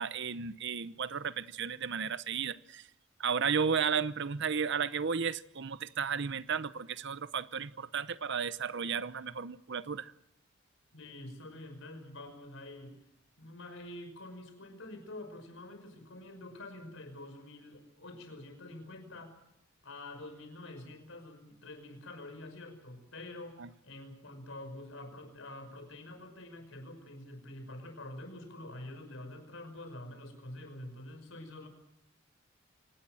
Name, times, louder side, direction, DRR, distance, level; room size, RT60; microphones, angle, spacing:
voice 1, 0.0-2.8 3.2-10.1 23.6-23.7, right 6 dB, 60° right, 0.8 m, -33 dB
voice 2, 10.9-13.0 13.4-19.4 19.8-31.7, left 1 dB, 70° left, 5.7 m, -47 dB
25.5 x 19.0 x 7.7 m
head